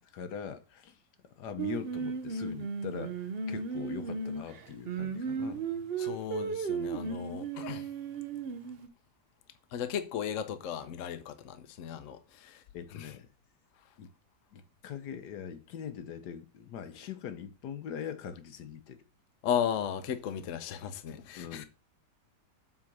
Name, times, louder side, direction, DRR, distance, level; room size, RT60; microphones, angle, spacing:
voice 1, 0.0-1.0 1.3-5.6 12.4-13.3 14.0-14.1 14.5-19.0 21.4-21.6, left 8 dB, 75° left, 1.4 m, -42 dB
Singing, 1.6-8.9, right 5 dB, 50° right, 0.7 m, -35 dB
voice 2, 6.0-7.9 9.7-12.6 12.9-13.1 19.4-21.6, left 9 dB, 55° left, 1.0 m, -35 dB
7.6 x 3.8 x 6.0 m
omnidirectional pair, 1.8 m